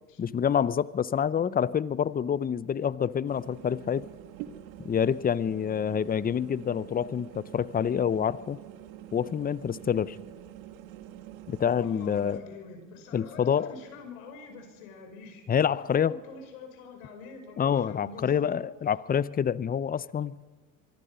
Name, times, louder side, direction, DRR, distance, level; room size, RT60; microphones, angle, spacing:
voice 1, 0.2-4.0 4.8-8.6 9.1-10.2 11.5-12.4 13.1-13.8 15.5-16.2 17.6-20.4, left 8 dB, 20° left, 0.7 m, -27 dB
sound 1, 3.3-12.4, right 12 dB, 75° right, 1.7 m, -46 dB
voice 2, 11.8-18.5, left 4 dB, 80° left, 5.5 m, -46 dB
24.0 x 24.0 x 5.5 m
hypercardioid pair, 80°, 41 cm